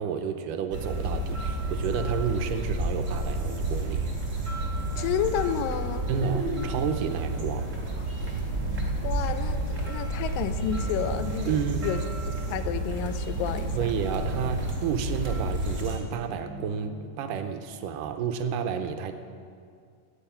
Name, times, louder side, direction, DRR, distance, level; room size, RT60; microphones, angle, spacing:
voice 1, 0.0-4.1 6.1-7.7 11.5-11.9 13.7-19.1, right 7 dB, 80° right, 7 dB, 2.4 m, -31 dB
sound 1, 0.7-16.0, right 2 dB, 25° right, 1.9 m, -30 dB
voice 2, 5.0-6.1 9.0-11.5 11.8-12.0 12.3-13.8, left 9 dB, 85° left, 10 dB, 2.4 m, -30 dB
sound 2, 8.1-9.4 10.6-11.9 13.2-14.5 15.8-17.2, right 1 dB, 55° left, 5.2 m, -44 dB
15.0 x 6.4 x 8.7 m, 2.2 s
omnidirectional pair, 3.9 m